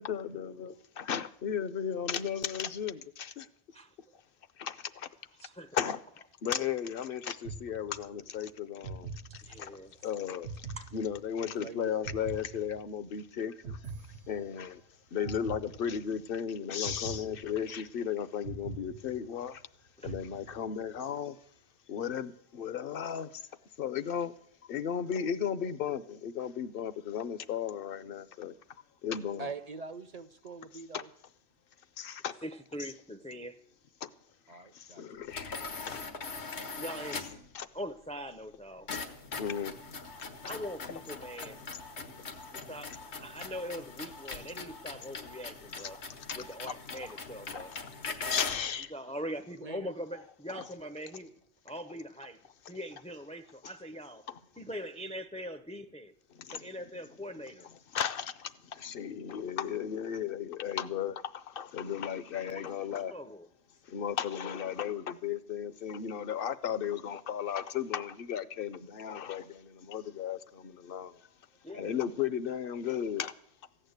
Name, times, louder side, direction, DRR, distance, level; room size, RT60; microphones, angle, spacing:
voice 1, 0.0-3.5 4.6-5.1 5.7-6.0 6.4-9.1 9.6-9.7 10.0-10.5 10.9-13.8 14.3-14.8 15.1-19.6 20.0-21.3 21.9-23.3 23.8-24.3 24.7-28.5 29.0-29.5 30.9-31.0 32.0-32.3 35.0-36.0 37.5-37.7 39.4-39.7 40.4-40.6 40.8-40.9 45.8-45.9 46.7-46.8 47.5-47.6 48.3-48.9 50.5-50.6 53.6-53.7 56.5-56.6 57.9-63.1 63.9-71.1 71.7-73.3, left 8 dB, 60° left, 14 dB, 0.9 m, -35 dB
voice 2, 5.3-5.8 6.1-6.3 9.5-10.0 10.8-10.9 20.0-20.2 24.1-24.2 29.5-29.6 32.4-33.6 36.8-37.3 37.7-38.9 40.4-41.6 42.5-46.0 46.3-47.9 48.7-51.3 51.6-52.4 52.7-54.2 54.6-56.1 56.5-57.7 62.5-63.5 71.6-72.1, equal, 10° left, 7 dB, 0.5 m, -42 dB
sound 1, 7.4-8.3 8.8-9.9 10.4-11.6 12.0-13.2 13.6-14.8 15.2-16.3 16.8-18.0 18.4-19.6 20.0-20.9, right 4 dB, 75° right, 1.1 m, -43 dB
voice 3, 11.4-12.1 29.4-31.1 34.5-35.2 49.6-49.9, right 4 dB, 40° right, 12 dB, 0.7 m, -43 dB
sound 2, 35.3-37.5 38.9-48.7, left 4 dB, 85° left, 1.6 m, -41 dB
15.0 x 8.9 x 8.0 m, 0.68 s
omnidirectional pair, 1.1 m